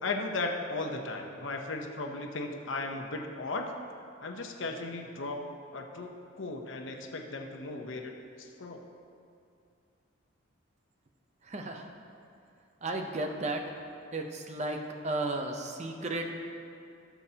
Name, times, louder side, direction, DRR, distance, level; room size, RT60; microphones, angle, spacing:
voice 1, 0.0-3.7 4.2-5.4 5.7-6.1 6.4-8.1 8.4-8.8, left 3 dB, 75° left, 3 dB, 0.9 m, -36 dB
voice 2, 11.5-11.8 12.8-13.6 14.1-16.3, right 2 dB, 35° right, 3 dB, 0.7 m, -34 dB
16.5 x 7.1 x 2.9 m, 2.5 s
head